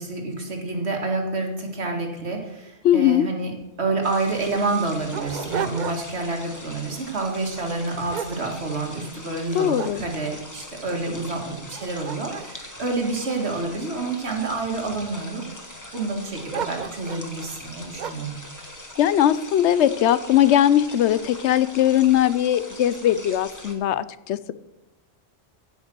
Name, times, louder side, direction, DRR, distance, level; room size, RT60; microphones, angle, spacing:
voice 1, 0.0-3.5 3.8-15.5 15.9-18.4, right 3 dB, 70° right, 2 dB, 2.1 m, -28 dB
voice 2, 2.8-3.3 9.5-10.0 19.0-24.5, left 11 dB, 80° left, 16 dB, 0.9 m, -20 dB
Dog, 3.6-3.7 3.9-4.0 4.6-6.3 6.7-7.0 7.6-9.1 9.5-10.4 11.0-11.1 11.6-13.9 14.6-15.2 16.5-17.3 18.0-18.4, right 7 dB, 50° right, 0.7 m, -34 dB
sound 1, 4.0-23.8, left 1 dB, 15° left, 1.6 m, -42 dB
16.0 x 5.4 x 6.1 m, 0.97 s
omnidirectional pair, 1.2 m